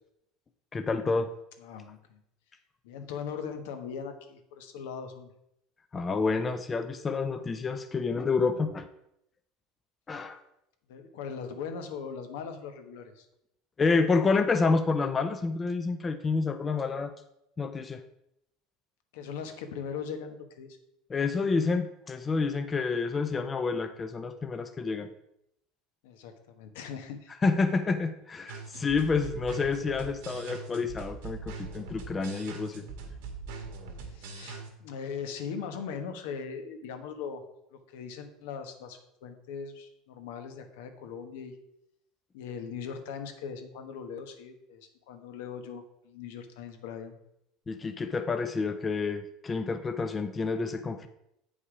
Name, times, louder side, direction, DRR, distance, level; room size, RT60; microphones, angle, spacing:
voice 1, 0.7-1.3 5.9-8.9 10.1-10.4 13.8-17.1 17.6-18.0 21.1-25.1 27.4-32.8 47.7-51.1, left 4 dB, 20° left, 8 dB, 0.5 m, -28 dB
voice 2, 1.6-2.2 2.8-5.3 10.9-13.3 19.1-20.8 22.9-23.0 26.0-27.3 34.1-37.4 37.7-41.5 42.3-47.2, left 6 dB, 85° left, 6 dB, 1.2 m, -40 dB
sound 1, 28.5-34.7, right 4 dB, 80° right, 1.8 m, -42 dB
8.3 x 5.6 x 4.9 m, 0.80 s
cardioid pair, 150°, 0 cm